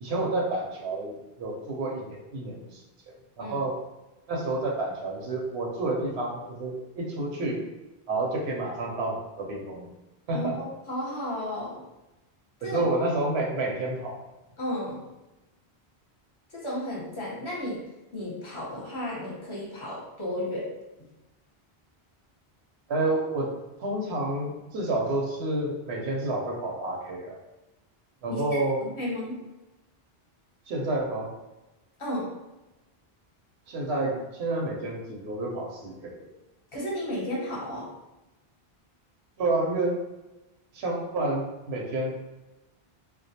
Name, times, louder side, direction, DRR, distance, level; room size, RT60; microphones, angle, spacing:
voice 1, 0.0-3.8 4.3-7.6 8.1-9.9 10.3-10.6 12.6-14.2 22.9-23.5 23.8-27.4 28.2-28.8 30.7-31.3 33.7-36.3 39.4-40.0 40.7-42.1, right 2 dB, 80° right, -1 dB, 0.8 m, -29 dB
voice 2, 10.3-11.8 12.6-12.9 14.6-15.0 16.5-17.8 18.1-20.7 28.3-28.6 28.9-29.4 32.0-32.3 36.7-37.9, left 1 dB, 30° left, -5 dB, 0.7 m, -33 dB
2.3 x 2.2 x 2.7 m, 1.0 s
omnidirectional pair, 1.1 m